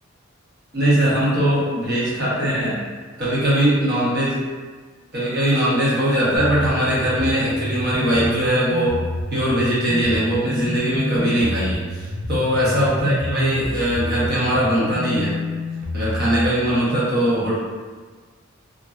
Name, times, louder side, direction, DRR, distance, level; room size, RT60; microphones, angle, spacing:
voice 1, 0.7-2.8 3.2-4.4 5.1-9.0 9.3-15.4 15.9-17.6, right 1 dB, 50° right, -8 dB, 0.9 m, -20 dB
sound 1, 6.4-16.5, left 1 dB, 35° right, 0.4 m, -28 dB
2.5 x 2.1 x 2.3 m, 1.5 s
head